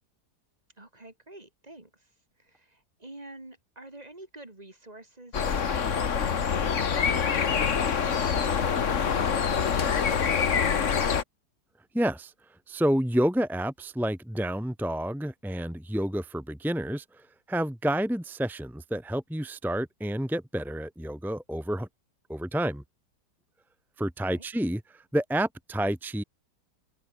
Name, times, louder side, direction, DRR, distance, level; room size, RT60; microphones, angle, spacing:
voice 1, 0.8-2.1 2.4-10.2 24.3-24.4, right 2 dB, 20° right, 3.5 m, -49 dB
sound 1, 5.3-11.2, left 6 dB, 45° left, 1.6 m, -25 dB
voice 2, 11.9-12.3 12.7-21.9 22.3-22.8 24.0-26.2, equal, ahead, 0.5 m, -29 dB
omnidirectional pair, 1.8 m